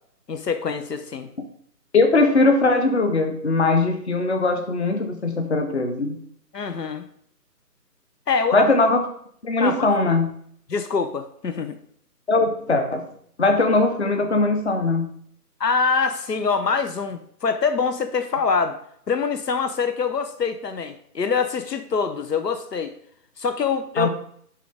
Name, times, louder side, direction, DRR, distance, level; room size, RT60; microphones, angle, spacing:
voice 1, 0.3-1.3 6.5-7.1 8.3-8.7 9.6-9.9 10.7-11.8 15.6-18.8 19.1-22.9 23.4-24.1, left 5 dB, 80° left, 9 dB, 1.0 m, -24 dB
voice 2, 1.9-6.2 8.5-9.0 9.4-10.3 12.3-13.1 13.4-15.1 24.0-24.1, left 3 dB, 45° left, 5 dB, 1.0 m, -20 dB
11.0 x 3.8 x 3.6 m, 0.64 s
hypercardioid pair, 170°, 48 cm